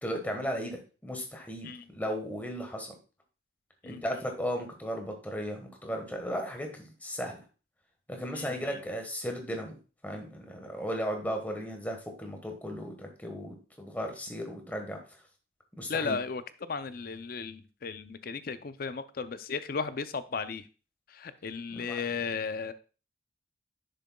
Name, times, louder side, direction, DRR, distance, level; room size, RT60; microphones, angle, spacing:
voice 1, 0.0-2.9 3.8-7.4 8.1-9.8 10.0-15.0 15.8-16.2 21.7-22.0, equal, 10° left, 3 dB, 1.3 m, -36 dB
voice 2, 8.3-8.8 15.9-20.7 21.1-22.7, left 5 dB, 50° left, 13 dB, 0.5 m, -35 dB
10.0 x 6.6 x 2.3 m, 0.34 s
head